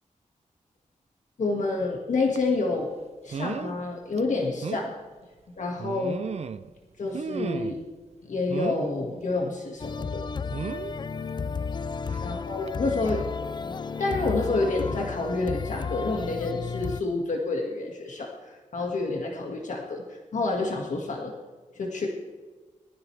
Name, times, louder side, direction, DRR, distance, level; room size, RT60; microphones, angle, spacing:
voice 1, 1.4-2.9 3.2-5.0 5.6-6.2 7.0-7.8 8.2-10.2 12.2-13.2 13.6-13.7 14.0-21.3 21.8-22.1, left 3 dB, 65° left, 0 dB, 1.9 m, -28 dB
sound 1, 2.4-2.5 3.3-3.8 4.2-4.3 4.6-4.9 5.8-6.7 7.1-7.9 8.5-8.9 10.5-10.9 12.1-12.3 12.7-12.8, right 6 dB, 55° right, 0.5 m, -34 dB
sound 2, 9.8-17.0, left 5 dB, 35° left, 0.3 m, -33 dB
20.5 x 13.5 x 3.3 m, 1.3 s
wide cardioid pair, 100°, 13 cm